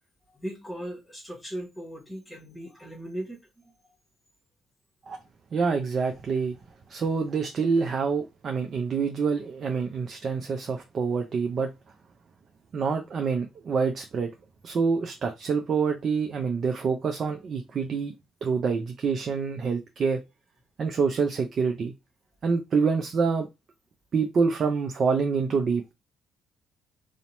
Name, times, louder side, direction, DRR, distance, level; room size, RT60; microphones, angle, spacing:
voice 1, 0.3-3.7, right 1 dB, 15° left, 1.0 m, -38 dB
voice 2, 5.5-6.6 6.9-11.7 12.7-14.3 14.6-18.1 18.4-20.2 20.8-21.9 22.4-23.5 24.1-25.9, right 5 dB, 50° right, 0.4 m, -26 dB
2.8 x 2.1 x 2.9 m
hypercardioid pair, 60°, 0 cm